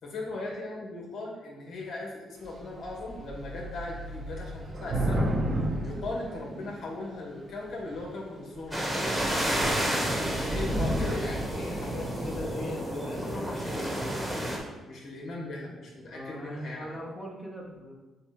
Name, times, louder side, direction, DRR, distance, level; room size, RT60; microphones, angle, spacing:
voice 1, 0.0-5.3 5.8-9.2 10.4-14.2 14.8-16.9, left 2 dB, 60° left, -3 dB, 2.0 m, -38 dB
Thunder / Rain, 2.4-2.6 2.8-7.0 7.7-8.1 8.6-8.7 9.0-12.7, right 1 dB, 45° right, 1.0 m, -33 dB
sound 1, 8.7-14.6, right 1 dB, 5° right, 1.5 m, -31 dB
voice 2, 16.1-17.9, equal, 10° left, -3 dB, 1.2 m, -41 dB
7.0 x 2.7 x 5.1 m, 1.1 s
cardioid pair, 90°, 0 cm